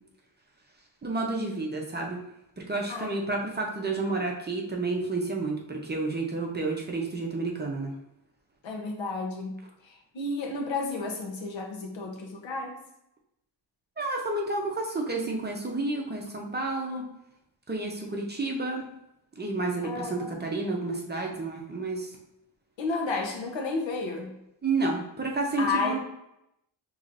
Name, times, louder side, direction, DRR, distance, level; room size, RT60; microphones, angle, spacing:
voice 1, 1.0-2.2 2.6-7.9 14.0-17.1 17.7-18.8 19.4-22.1 24.6-26.0, right 3 dB, 25° right, 0 dB, 0.6 m, -30 dB
voice 2, 8.6-12.8 19.8-20.3 22.8-24.3 25.6-26.0, left 3 dB, 80° left, 1 dB, 1.0 m, -32 dB
5.6 x 3.1 x 2.5 m, 0.83 s
wide cardioid pair, 140°, 44 cm